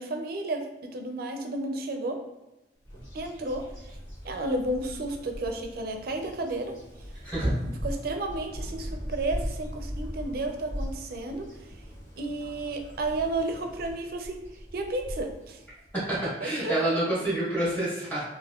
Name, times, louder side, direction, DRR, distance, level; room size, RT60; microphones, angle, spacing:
voice 1, 0.0-2.2 3.1-4.0 4.2-6.7 7.7-11.5 12.2-14.4 14.7-15.6 16.4-16.7, right 2 dB, 55° right, 4 dB, 0.4 m, -32 dB
Bird vocalization bird call bird song, 2.8-16.1, equal, 85° left, 1.3 m, -40 dB
voice 2, 7.2-7.5 16.1-18.2, right 1 dB, 10° left, -10 dB, 1.4 m, -27 dB
3.4 x 2.5 x 2.3 m, 0.98 s
head